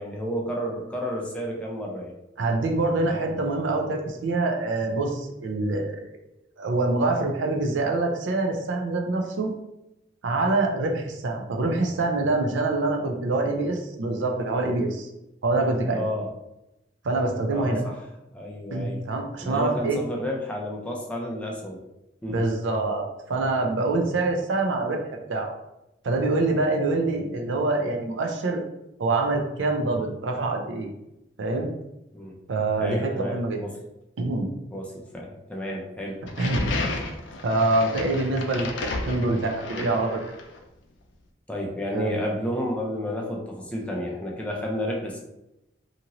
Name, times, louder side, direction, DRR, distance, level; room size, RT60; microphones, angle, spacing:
voice 1, 0.0-2.1 3.1-3.2 15.9-16.3 17.5-18.0 18.3-19.0 19.4-21.8 22.2-22.4 24.0-24.2 27.2-27.3 32.1-32.4 32.8-33.8 34.7-36.2 41.5-45.2, equal, 5° left, -1 dB, 0.4 m, -31 dB
voice 2, 2.4-6.1 6.6-9.5 10.2-15.1 15.4-16.0 17.0-17.8 18.7-20.0 22.3-25.0 25.3-25.5 26.0-28.6 29.0-30.9 31.4-31.7 32.5-33.6 34.2-34.5 36.4-36.7 37.4-38.7 39.1-40.2 41.9-42.2, right 2 dB, 85° right, 2 dB, 0.5 m, -25 dB
sound 1, 36.3-40.6, left 2 dB, 75° left, 0.5 m, -32 dB
2.8 x 2.5 x 2.8 m, 0.90 s
head